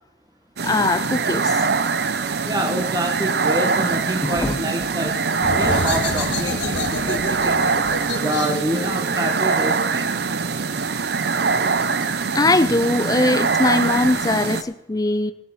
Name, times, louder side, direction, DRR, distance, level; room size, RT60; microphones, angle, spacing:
voice 1, 0.6-1.7 4.2-4.6 12.3-15.3, left 2 dB, 20° left, 12 dB, 0.6 m, -21 dB
sound 1, 0.6-14.6, right 4 dB, 60° right, 0.7 m, -23 dB
voice 2, 2.4-7.7 8.1-10.1, right 1 dB, 20° right, 2 dB, 1.2 m, -27 dB
sound 2, 5.4-10.8, left 2 dB, 75° left, 1.4 m, -29 dB
19.5 x 6.5 x 4.8 m, 0.84 s
head